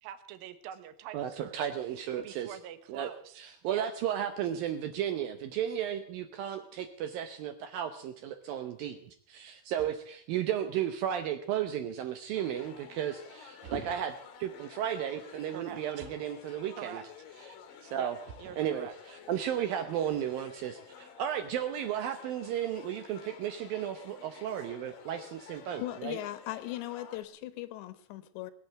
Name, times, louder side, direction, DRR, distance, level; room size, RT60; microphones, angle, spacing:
voice 1, 0.0-1.6 2.2-3.9 15.5-16.1 16.8-17.0 17.9-18.1 18.4-18.9, right 10 dB, 65° right, 11 dB, 2.5 m, -45 dB
voice 2, 1.1-2.5 2.9-3.1 3.4-17.0 17.8-18.2 18.6-26.2, right 10 dB, 85° right, 9 dB, 2.0 m, -34 dB
sound 1, 8.4-21.8, right 5 dB, 50° right, 2.7 m, -52 dB
sound 2, 12.3-27.2, left 7 dB, 60° left, 2.7 m, -51 dB
voice 3, 25.8-28.5, left 15 dB, 75° left, 13 dB, 3.0 m, -38 dB
20.5 x 8.8 x 7.8 m, 0.64 s
omnidirectional pair, 5.4 m